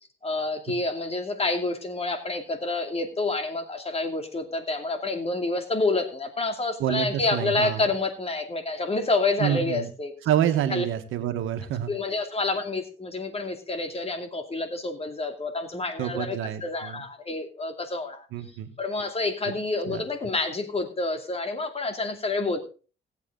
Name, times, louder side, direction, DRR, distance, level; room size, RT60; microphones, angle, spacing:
voice 1, 0.2-10.1 10.7-10.9 11.9-18.3 18.8-22.6, left 3 dB, 30° left, 6 dB, 2.6 m, -28 dB
voice 2, 6.8-7.9 9.4-9.9 10.3-11.9 16.0-17.0 18.3-18.7 19.9-20.0, right 11 dB, 90° right, 8 dB, 1.4 m, -27 dB
18.0 x 8.2 x 3.8 m, 0.36 s
cardioid pair, 90°, 20 cm